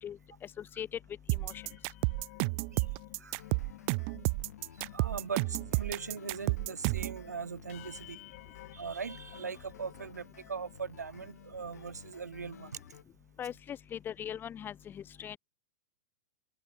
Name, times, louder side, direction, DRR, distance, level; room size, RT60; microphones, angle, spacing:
voice 1, 0.6-0.9 1.3-1.6 13.4-15.4, left 9 dB, 25° left, 1.3 m, -40 dB
sound 1, 1.3-7.2, right 37 dB, 45° right, 0.9 m, -31 dB
sound 2, 1.4-10.9 11.3-11.5 11.7-12.1, left 20 dB, 55° left, 3.2 m, -54 dB
sound 3, 3.3-13.0, left 9 dB, 75° left, 3.7 m, -54 dB
voice 2, 4.9-8.2 8.7-12.7, right 5 dB, 85° right, 0.8 m, -40 dB
open air
hypercardioid pair, 105°, 9 cm